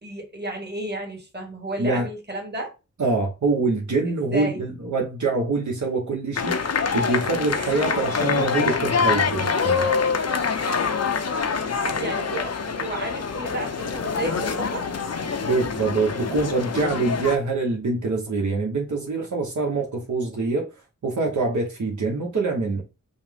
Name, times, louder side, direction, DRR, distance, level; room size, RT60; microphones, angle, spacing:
voice 1, 0.0-2.7 4.1-4.6 11.7-14.9, right 2 dB, 35° right, 1.4 m, -32 dB
voice 2, 3.0-9.9 15.4-20.7 21.0-22.8, right 3 dB, 70° right, 0.9 m, -25 dB
sound 1, 6.4-17.4, left 5 dB, 55° left, 0.6 m, -25 dB
5.4 x 2.0 x 3.4 m
wide cardioid pair, 60°, 31 cm